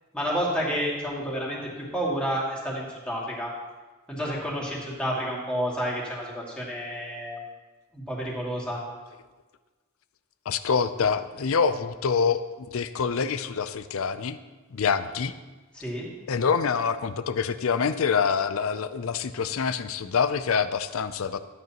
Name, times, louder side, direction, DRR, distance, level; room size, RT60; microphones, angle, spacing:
voice 1, 0.1-1.6 1.9-3.5 4.1-7.4 7.9-8.8 15.7-16.1, equal, 5° left, -6 dB, 2.4 m, -30 dB
voice 2, 10.5-14.4 14.7-15.3 16.3-21.4, left 6 dB, 70° left, 13 dB, 0.5 m, -26 dB
13.0 x 9.3 x 3.0 m, 1.3 s
head